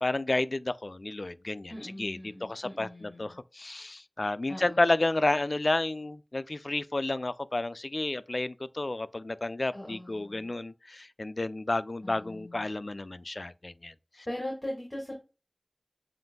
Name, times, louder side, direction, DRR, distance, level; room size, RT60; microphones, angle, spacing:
voice 1, 0.0-14.3, left 2 dB, 65° left, 0.3 m, -31 dB
voice 2, 1.7-3.4 4.5-5.0 9.7-10.5 12.0-12.7 14.2-15.2, left 1 dB, 30° left, 1.6 m, -40 dB
7.5 x 2.5 x 2.2 m
wide cardioid pair, 40°, 0 cm